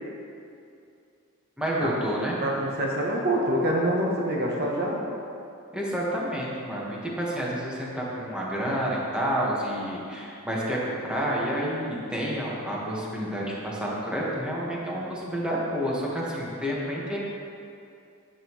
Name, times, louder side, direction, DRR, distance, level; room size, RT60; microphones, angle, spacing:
voice 1, 1.6-2.4 5.7-17.2, equal, 5° right, -6 dB, 1.5 m, -29 dB
voice 2, 2.4-5.0, right 1 dB, 50° right, -2 dB, 0.9 m, -26 dB
10.5 x 8.6 x 3.1 m, 2.5 s
head